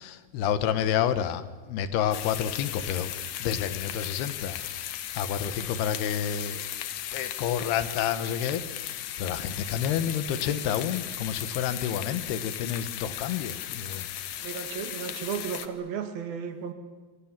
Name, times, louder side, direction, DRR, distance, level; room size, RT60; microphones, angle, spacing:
voice 1, 0.0-3.1 3.4-4.8 5.1-6.6 7.1-14.1, left 9 dB, 90° left, 12 dB, 3.3 m, -29 dB
sound 1, 2.1-15.7, left 11 dB, 70° left, 2.5 m, -36 dB
voice 2, 14.4-16.7, right 7 dB, 70° right, 7 dB, 3.9 m, -34 dB
27.0 x 24.5 x 7.4 m, 1.3 s
omnidirectional pair, 4.5 m